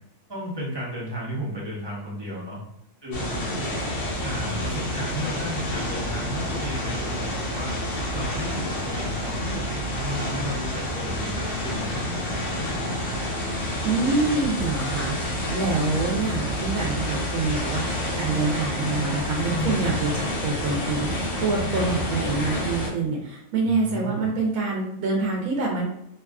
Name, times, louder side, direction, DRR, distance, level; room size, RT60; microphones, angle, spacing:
voice 1, 0.3-2.6 3.0-3.5 4.2-7.8 8.1-12.7 19.5-19.9 23.6-24.3, equal, 25° right, -6 dB, 0.7 m, -34 dB
sound 1, 3.1-22.9, left 1 dB, 65° left, 1.1 m, -28 dB
voice 2, 13.8-25.8, right 3 dB, 80° right, -2 dB, 1.1 m, -26 dB
2.7 x 2.3 x 2.3 m, 0.77 s
omnidirectional pair, 1.5 m